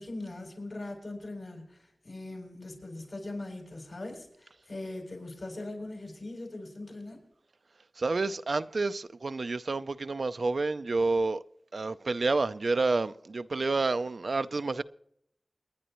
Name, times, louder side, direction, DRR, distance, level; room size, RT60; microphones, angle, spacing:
voice 1, 0.0-7.2, left 2 dB, 70° left, 7.1 m, -41 dB
voice 2, 8.0-11.4 11.7-14.8, right 3 dB, 70° right, 0.5 m, -29 dB
29.5 x 10.0 x 3.1 m
wide cardioid pair, 55°, 0 cm